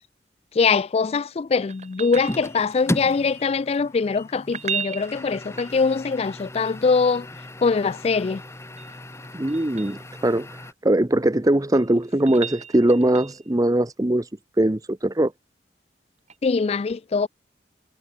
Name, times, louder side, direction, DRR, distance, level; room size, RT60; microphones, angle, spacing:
voice 1, 0.5-7.3 7.6-8.4 16.4-17.3, left 4 dB, 35° left, 0.3 m, -22 dB
sound 1, 1.7-2.9 4.4-6.2 8.4-10.0 11.4-13.5 16.3-16.4, right 7 dB, 40° right, 5.3 m, -36 dB
sound 2, 2.1-10.7, left 1 dB, 15° left, 1.3 m, -36 dB
voice 2, 9.3-10.5 10.8-14.3 14.6-15.3, right 1 dB, 20° right, 0.8 m, -21 dB
head